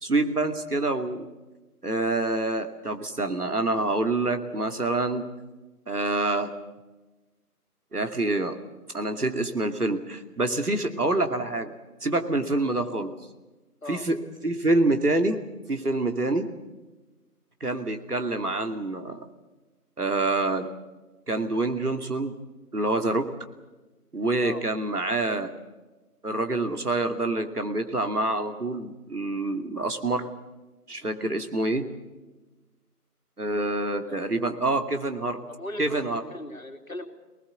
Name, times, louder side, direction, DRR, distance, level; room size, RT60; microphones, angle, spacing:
voice 1, 0.0-1.3 1.8-5.3 5.9-6.5 7.9-8.6 8.9-11.7 12.0-13.1 13.9-14.2 14.4-15.4 15.7-16.5 17.6-19.2 20.0-20.7 21.3-22.3 22.7-23.3 24.1-25.5 26.2-30.3 30.9-31.9 33.4-35.4 35.8-36.2, right 2 dB, 70° right, 6 dB, 2.7 m, -26 dB
voice 2, 35.5-37.1, left 1 dB, 60° left, 6 dB, 2.9 m, -38 dB
24.0 x 20.0 x 8.1 m, 1.2 s
figure-of-eight pair, 175°, 47 cm